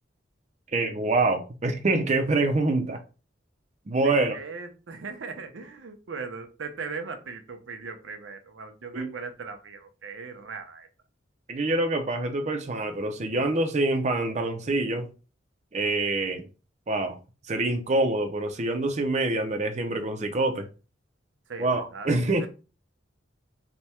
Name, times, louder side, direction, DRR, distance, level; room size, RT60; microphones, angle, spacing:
voice 1, 0.7-3.0 3.9-4.3 8.9-9.1 11.5-15.1 15.7-16.4 16.9-17.2 17.5-20.7 21.6-22.5, right 2 dB, 35° right, 0.5 m, -25 dB
voice 2, 4.0-10.9 21.5-22.1 22.4-22.5, right 4 dB, 85° right, 0.6 m, -39 dB
3.4 x 2.2 x 4.2 m
head